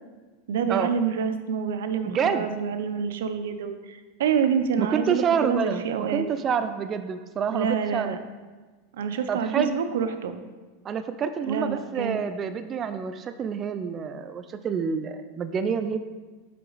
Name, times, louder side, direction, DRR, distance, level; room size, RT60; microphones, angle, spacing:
voice 1, 0.5-6.3 7.5-8.2 8.9-10.4 11.5-12.2, right 7 dB, 85° right, 9 dB, 0.6 m, -27 dB
voice 2, 2.1-2.5 4.8-8.2 9.3-9.7 10.8-16.0, right 7 dB, 25° right, 9 dB, 0.3 m, -28 dB
6.6 x 5.7 x 4.0 m, 1.3 s
supercardioid pair, 135°, 0 cm